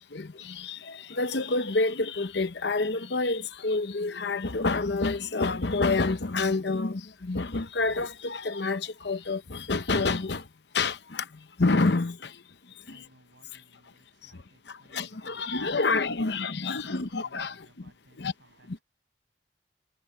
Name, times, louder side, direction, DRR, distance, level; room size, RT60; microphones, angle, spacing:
voice 1, 0.1-10.4 10.7-11.2 11.6-12.2 14.9-17.5 18.2-18.3, left 3 dB, 65° left, 0.9 m, -28 dB
voice 2, 12.6-18.8, right 1 dB, 80° right, 7.6 m, -61 dB
head